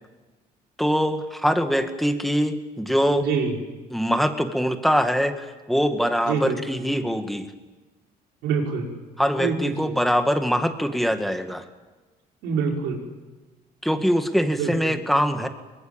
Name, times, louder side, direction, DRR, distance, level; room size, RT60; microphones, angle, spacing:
voice 1, 0.8-3.3 3.9-7.5 9.2-11.6 13.8-15.5, equal, ahead, 6 dB, 2.0 m, -23 dB
voice 2, 3.2-3.5 6.3-6.6 8.4-8.9 9.4-9.6 9.8-9.9 12.4-13.0 14.6-14.9, right 6 dB, 90° right, 0 dB, 5.8 m, -25 dB
24.0 x 21.0 x 9.0 m, 1.2 s
cardioid pair, 110°, 17 cm